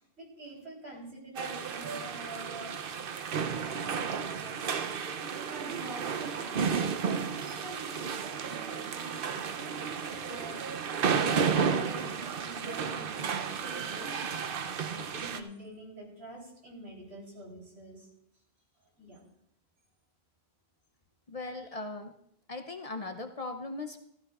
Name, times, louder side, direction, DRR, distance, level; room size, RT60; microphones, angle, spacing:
voice 1, 0.2-2.7 3.3-3.8 4.2-4.6 5.6-9.8 10.2-10.6 11.2-14.1 14.9-18.1 19.0-19.2, right 1 dB, 80° right, -2 dB, 4.0 m, -47 dB
sound 1, 1.4-15.4, right 6 dB, 65° right, 0.8 m, -32 dB
voice 2, 21.3-22.1 22.5-24.0, left 2 dB, 40° left, 6 dB, 0.6 m, -38 dB
15.0 x 13.5 x 2.4 m, 0.76 s
omnidirectional pair, 1.1 m